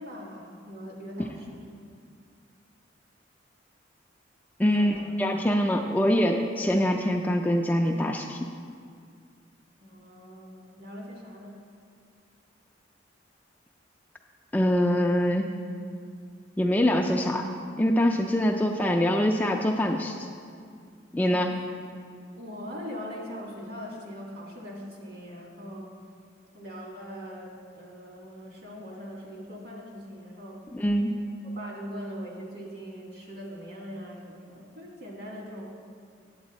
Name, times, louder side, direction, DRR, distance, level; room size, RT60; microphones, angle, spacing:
voice 1, 0.0-1.8 4.6-5.1 9.8-11.6 21.3-21.7 22.3-25.9 26.5-30.6 31.4-35.7, equal, 55° right, -2 dB, 1.7 m, -41 dB
voice 2, 4.6-8.4 14.5-15.5 16.6-17.5 17.8-20.2 21.1-21.5 30.7-31.1, equal, 10° left, 1 dB, 0.3 m, -24 dB
8.7 x 8.2 x 4.1 m, 2.2 s
head